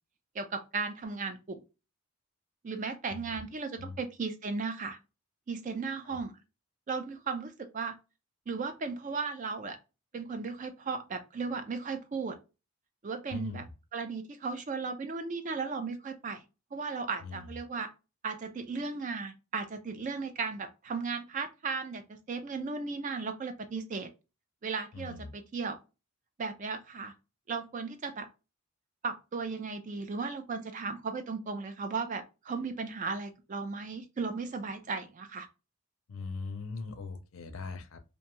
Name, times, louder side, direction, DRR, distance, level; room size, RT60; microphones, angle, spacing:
voice 1, 0.3-1.6 2.6-5.0 5.5-6.3 6.9-8.0 8.5-9.8 10.1-12.4 13.0-13.6 13.9-16.4 16.7-17.9 18.2-24.1 24.6-25.8 26.4-27.1 27.5-28.3 29.0-35.5, right 4 dB, 35° right, 0.3 m, -36 dB
voice 2, 13.3-13.7 17.2-17.5 24.9-25.3 36.1-38.0, left 4 dB, 70° left, 0.5 m, -40 dB
2.6 x 2.2 x 2.9 m
head